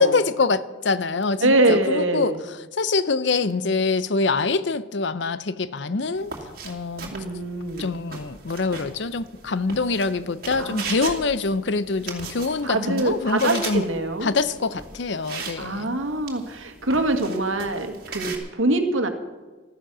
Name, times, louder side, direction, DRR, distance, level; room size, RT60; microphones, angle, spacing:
voice 1, 0.0-6.3 6.6-7.1 7.8-13.8 14.2-16.0, left 4 dB, 60° left, 0.6 m, -25 dB
voice 2, 1.4-2.4 7.1-8.0 10.6-10.9 12.6-14.3 15.6-19.1, right 2 dB, 85° right, 1.8 m, -24 dB
sound 1, 6.2-18.4, right 4 dB, 50° right, 2.4 m, -38 dB
15.0 x 13.0 x 6.2 m
head